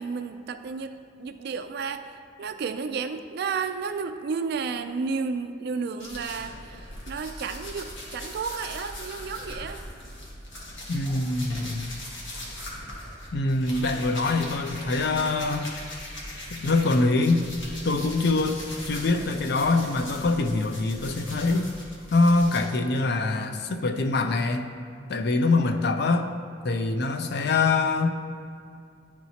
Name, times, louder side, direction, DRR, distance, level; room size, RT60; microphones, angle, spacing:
voice 1, 0.0-9.8, right 5 dB, 60° right, 9 dB, 0.4 m, -32 dB
sound 1, 6.0-16.9 17.2-22.6, left 1 dB, 90° left, 1.4 m, -40 dB
voice 2, 10.9-12.0 13.3-15.7 16.5-17.4 17.8-21.7 22.1-24.7 25.1-26.3 26.6-28.1, left 3 dB, 60° left, 6 dB, 0.5 m, -24 dB
10.5 x 4.4 x 2.8 m, 2.3 s
head